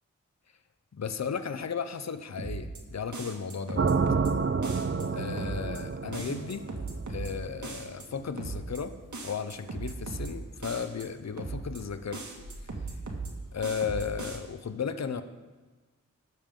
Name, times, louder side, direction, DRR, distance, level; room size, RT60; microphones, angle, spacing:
voice 1, 0.9-3.9 4.8-6.7 7.1-8.9 9.2-12.2 13.5-15.2, left 6 dB, 55° left, 11 dB, 0.8 m, -35 dB
sound 1, 2.4-2.8 3.1-4.3 4.6-5.0 5.4-5.8 6.1-7.3 7.6-8.0 8.4-8.8 9.1-10.3 10.6-11.0 11.4-11.8 12.1-13.3 13.6-14.4, right 3 dB, 60° right, 2.0 m, -37 dB
sound 2, 3.8-7.8, right 4 dB, 40° right, 0.7 m, -29 dB
sound 3, 5.1-13.7, left 1 dB, 70° left, 3.4 m, -55 dB
20.0 x 7.1 x 3.8 m, 1.3 s
cardioid pair, 40°, 33 cm